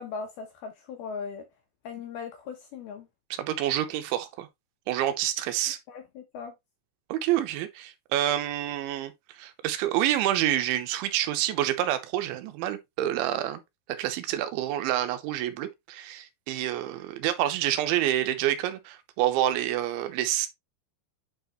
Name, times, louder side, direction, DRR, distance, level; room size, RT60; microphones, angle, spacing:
voice 1, 0.0-1.4 1.8-3.1 5.9-6.5, left 5 dB, 75° left, 2.4 m, -38 dB
voice 2, 3.3-4.5 4.9-5.8 7.1-13.6 13.9-20.5, right 12 dB, 85° right, 3.1 m, -28 dB
8.7 x 4.8 x 3.0 m
omnidirectional pair, 5.5 m